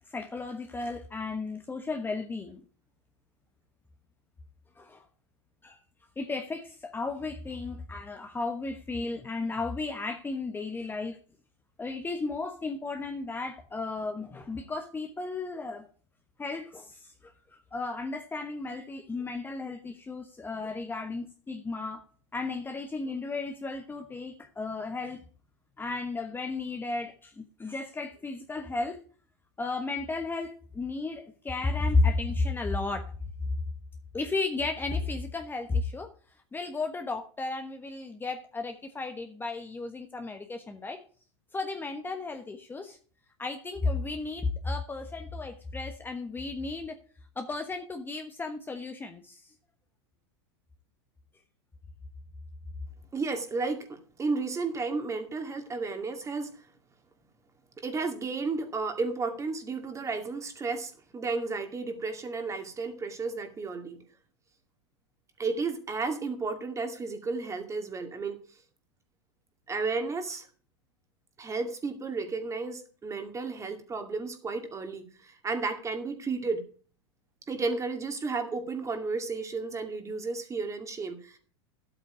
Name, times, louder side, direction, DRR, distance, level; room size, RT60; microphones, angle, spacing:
voice 1, 0.1-2.6 4.8-5.0 5.6-5.8 6.2-11.2 11.8-15.8 16.4-22.0 22.3-25.2 25.8-29.0 29.6-33.1 34.1-36.1 36.5-41.0 41.5-43.0 43.4-47.0 47.4-49.5, left 3 dB, 15° left, 6 dB, 1.2 m, -33 dB
voice 2, 53.1-56.6 57.8-64.0 65.4-68.4 69.7-70.5 71.4-76.6 77.5-81.4, right 4 dB, 20° right, 6 dB, 2.3 m, -33 dB
12.0 x 8.3 x 5.0 m, 0.42 s
hypercardioid pair, 105°, 15 cm